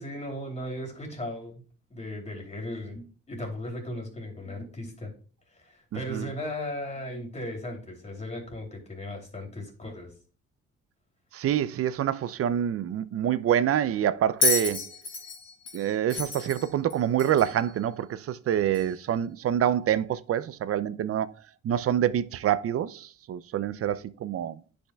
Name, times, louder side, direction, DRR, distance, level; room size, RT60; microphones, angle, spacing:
voice 1, 0.0-1.6 1.9-5.1 5.5-10.1, left 1 dB, 20° left, 2.9 m, -37 dB
voice 2, 5.9-6.3 11.3-14.8 15.7-21.3 21.6-24.6, right 10 dB, 50° right, 0.5 m, -26 dB
Bell, 14.4-17.6 18.7-18.9, left 4 dB, 55° left, 2.8 m, -30 dB
10.0 x 5.3 x 2.3 m
cardioid pair, 90°, 30 cm